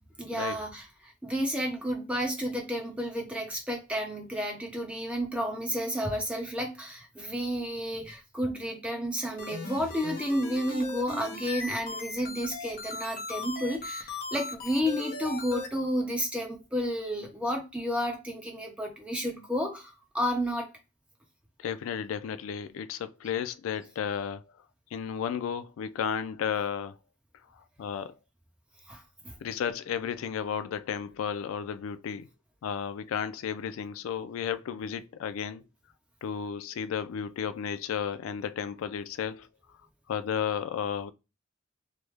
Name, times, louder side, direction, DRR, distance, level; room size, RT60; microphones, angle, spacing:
voice 1, 0.2-20.7 28.9-29.4, equal, 5° right, 0.8 m, -31 dB
sound 1, 9.4-15.7, left 3 dB, 45° left, 0.8 m, -38 dB
voice 2, 21.6-24.4 24.9-27.0 27.8-28.1 29.4-32.3 32.6-35.6 36.2-39.5 40.1-41.1, left 7 dB, 85° left, 0.3 m, -33 dB
3.2 x 2.1 x 3.2 m
head